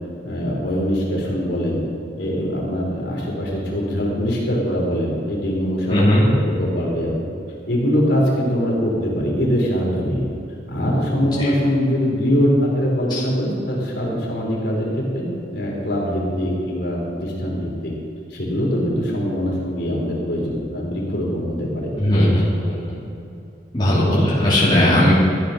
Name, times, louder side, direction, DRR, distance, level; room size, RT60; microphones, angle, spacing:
voice 1, 0.2-1.8 2.2-7.3 7.7-10.3 10.7-17.9 18.3-22.4, equal, 60° left, -4 dB, 3.7 m, -22 dB
voice 2, 5.9-6.3 11.4-11.5 13.1-13.2 22.0-22.8 23.7-25.1, left 1 dB, 25° left, -9 dB, 2.8 m, -17 dB
14.0 x 9.5 x 5.8 m, 2.7 s
head